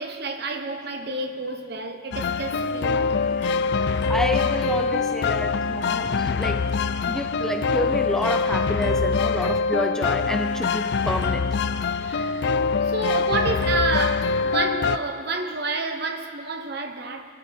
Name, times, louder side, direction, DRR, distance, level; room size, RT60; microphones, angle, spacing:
voice 1, 0.0-3.5 12.0-17.3, right 3 dB, 55° right, 1.0 m, -30 dB
sound 1, 2.1-15.0, left 4 dB, 60° left, 0.4 m, -24 dB
voice 2, 4.1-6.7 7.1-11.6, equal, 5° left, 0.4 m, -29 dB
25.0 x 13.0 x 3.6 m
head